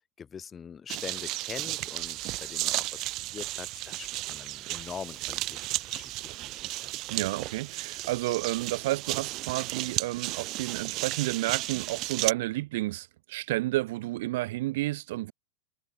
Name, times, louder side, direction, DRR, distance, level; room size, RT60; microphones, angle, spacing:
voice 1, 0.0-3.0 3.3-6.9, left 7 dB, 20° left, 1.3 m, -43 dB
sound 1, 0.9-12.3, right 19 dB, 40° right, 1.6 m, -34 dB
voice 2, 7.1-15.3, right 18 dB, 65° right, 0.4 m, -31 dB
supercardioid pair, 140°, 0 cm